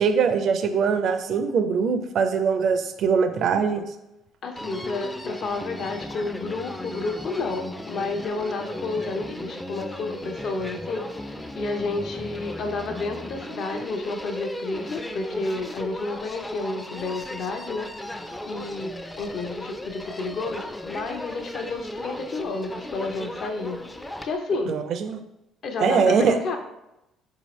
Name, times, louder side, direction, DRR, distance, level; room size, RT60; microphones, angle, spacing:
voice 1, 0.0-3.8 24.7-25.2 25.8-26.4, right 6 dB, 60° right, 8 dB, 0.4 m, -22 dB
voice 2, 4.4-23.8 24.2-24.8 25.6-26.6, left 3 dB, 60° left, 4 dB, 0.6 m, -31 dB
Human voice, 4.6-24.4, left 1 dB, 10° left, 0.3 m, -36 dB
4.0 x 2.8 x 3.1 m, 0.89 s
supercardioid pair, 75°, 0 cm